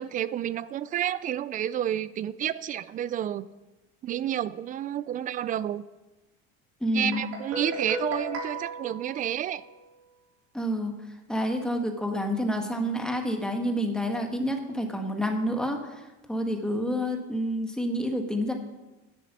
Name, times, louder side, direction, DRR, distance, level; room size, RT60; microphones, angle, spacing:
voice 1, 0.0-3.5 4.0-5.8 6.9-9.6, right 10 dB, 30° right, 17 dB, 0.4 m, -30 dB
voice 2, 6.8-7.3 10.5-10.9 11.3-18.5, equal, ahead, 3 dB, 1.4 m, -28 dB
Guitar, 7.1-9.9, right 1 dB, 55° right, 5.4 m, -36 dB
11.0 x 7.5 x 8.3 m, 1.1 s
cardioid pair, 145°, 30 cm